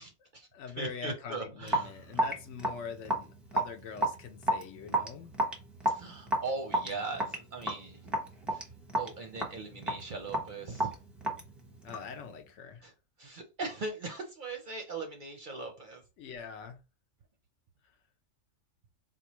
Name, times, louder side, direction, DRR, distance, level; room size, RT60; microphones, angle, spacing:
voice 1, 0.0-0.5 0.8-2.0 5.9-8.0 8.5-8.6 9.0-10.9 12.8-12.9 13.2-16.0, right 3 dB, 50° right, 0.6 m, -39 dB
voice 2, 0.5-5.3 11.8-12.8 16.2-16.8, left 6 dB, 70° left, 0.9 m, -43 dB
Raindrop / Drip, 1.7-12.2, right 1 dB, ahead, 0.6 m, -32 dB
4.3 x 2.3 x 2.9 m
omnidirectional pair, 1.3 m